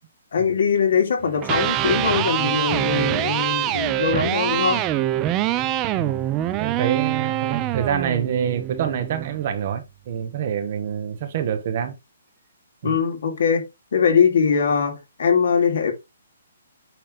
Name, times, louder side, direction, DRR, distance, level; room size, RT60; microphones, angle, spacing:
voice 1, 0.3-4.9 12.8-13.6 13.9-15.9, left 6 dB, 55° left, 2.6 m, -21 dB
Electric guitar, 1.3-9.4, right 13 dB, 15° right, 0.4 m, -24 dB
voice 2, 5.9-6.3 6.6-11.9 12.8-13.0, right 8 dB, 30° right, 1.1 m, -26 dB
8.9 x 3.1 x 5.1 m
hypercardioid pair, 175°, 0 cm